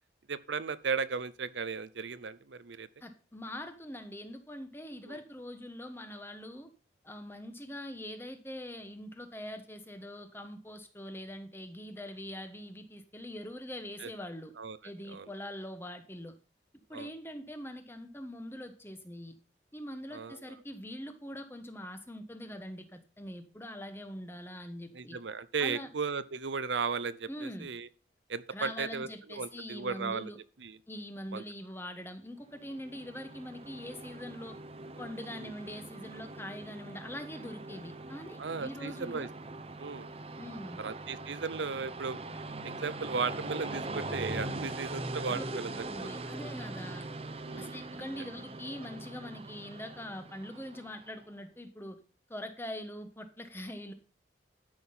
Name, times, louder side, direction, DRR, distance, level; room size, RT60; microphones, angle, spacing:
voice 1, 0.3-2.9 5.0-5.2 14.0-14.1 14.6-14.8 15.1-15.3 16.9-17.1 20.1-20.6 24.9-27.9 28.3-30.3 30.6-30.8 31.3-31.4 35.3-35.5 38.4-39.3 39.8-40.1 40.8-42.2 42.6-45.7 46.0-46.1 47.4-47.8, right 5 dB, 85° right, 15 dB, 0.7 m, -36 dB
voice 2, 3.0-6.7 7.0-14.5 14.8-16.3 16.9-19.3 19.7-25.2 25.6-25.9 27.3-27.7 28.5-30.4 30.9-34.6 35.0-39.3 40.4-40.8 45.3-45.4 45.9-47.1 47.6-52.0 52.3-53.9, left 1 dB, 15° left, 8 dB, 1.2 m, -43 dB
Train, 32.5-51.2, right 2 dB, 30° right, 0.9 m, -42 dB
12.5 x 6.2 x 5.6 m, 0.36 s
head